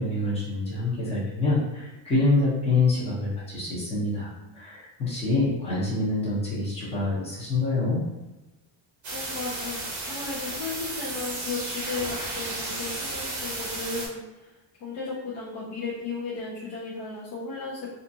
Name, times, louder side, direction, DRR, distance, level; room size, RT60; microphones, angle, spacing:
voice 1, 0.0-4.3 4.5-8.0, left 2 dB, 15° left, -7 dB, 0.6 m, -26 dB
sound 1, 9.0-14.1, right 2 dB, 40° right, 0.8 m, -33 dB
voice 2, 9.1-14.5 14.8-17.9, left 4 dB, 60° left, -7 dB, 0.7 m, -35 dB
2.5 x 2.3 x 2.6 m, 1.1 s
cardioid pair, 180°, 45 cm